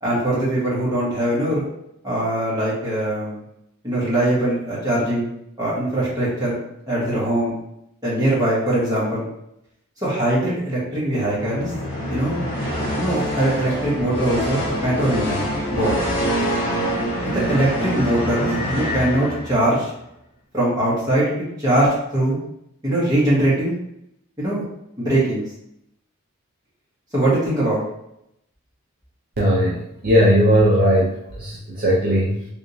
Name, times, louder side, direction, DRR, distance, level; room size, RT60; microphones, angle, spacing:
voice 1, 0.0-1.6 2.0-3.4 3.8-5.3 5.6-6.6 6.9-7.6 8.0-9.3 10.0-11.7 12.1-12.4 12.9-15.9 17.3-19.9 20.5-21.3 21.6-22.4 22.8-23.7 24.4-24.6 25.0-25.4 27.1-27.8, right 1 dB, 15° right, -8 dB, 1.3 m, -21 dB
sound 1, 11.1-19.8, equal, 25° left, 1.0 m, -25 dB
voice 2, 29.4-32.5, equal, 45° right, -5 dB, 0.5 m, -18 dB
3.5 x 2.9 x 2.6 m, 0.80 s
head